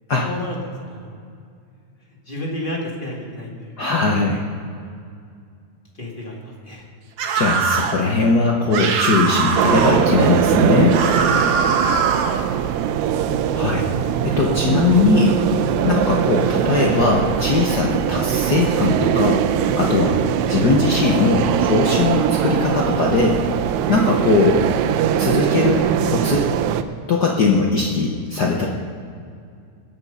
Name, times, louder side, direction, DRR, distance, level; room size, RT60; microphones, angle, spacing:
voice 1, 0.2-1.2 2.3-3.9 4.8-4.9 5.9-6.9 12.1-12.4, left 1 dB, 20° left, -2 dB, 2.0 m, -32 dB
voice 2, 3.8-4.4 7.3-11.0 13.5-13.9 14.2-15.4 15.8-19.4 19.7-20.2 20.5-23.4 23.9-24.7 25.2-26.5 27.1-28.7, left 3 dB, 80° left, -1 dB, 0.9 m, -19 dB
sound 1, 7.2-8.0 8.7-10.0 10.9-12.4, right 5 dB, 65° right, 1.9 m, -21 dB
sound 2, 9.6-26.8, right 9 dB, 85° right, 2.0 m, -21 dB
sound 3, 14.6-24.7, left 1 dB, 45° left, 4.1 m, -38 dB
21.5 x 7.5 x 5.5 m, 2.3 s
omnidirectional pair, 3.3 m